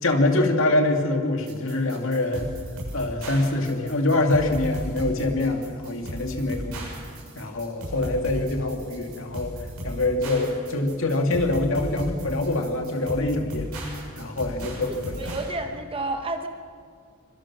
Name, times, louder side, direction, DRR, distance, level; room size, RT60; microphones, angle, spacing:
voice 1, 0.0-2.5 2.9-6.9 7.4-9.5 9.8-13.7 14.2-15.3, left 2 dB, 60° left, 3 dB, 2.4 m, -24 dB
sound 1, 1.5-15.5, equal, 90° right, 7.5 m, -36 dB
voice 2, 6.5-6.9 14.9-16.5, right 2 dB, 25° right, 5 dB, 1.1 m, -32 dB
24.5 x 23.0 x 6.2 m, 2.1 s
head